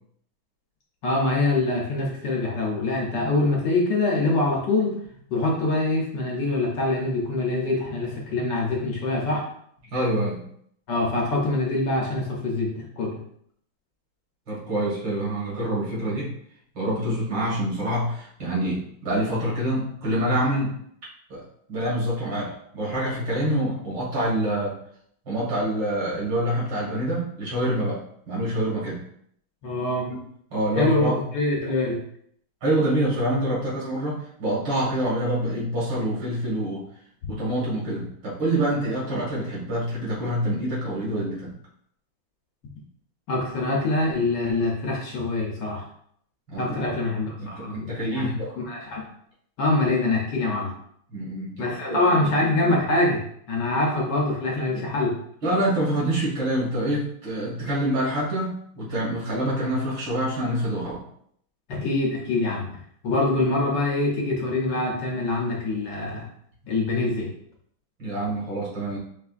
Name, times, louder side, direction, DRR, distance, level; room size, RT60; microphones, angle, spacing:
voice 1, 1.0-4.9 5.3-9.4 10.9-13.2 29.6-30.1 30.8-32.0 37.2-37.3 43.3-45.8 46.6-49.1 49.6-50.7 51.6-53.2 53.5-55.2 61.7-62.8 63.0-66.2 66.7-67.3, left 2 dB, 65° left, -1 dB, 1.3 m, -24 dB
voice 2, 9.9-10.4 14.5-16.3 16.7-20.7 21.3-21.4 21.7-24.7 25.3-28.0 28.3-29.0 30.1-30.2 30.5-31.2 32.6-36.8 37.3-41.5 46.5-46.9 47.4-48.5 51.1-52.3 54.7-54.8 55.4-61.0 68.0-69.0, right 1 dB, 60° right, -6 dB, 2.3 m, -26 dB
4.9 x 3.3 x 2.4 m, 0.67 s
omnidirectional pair, 2.2 m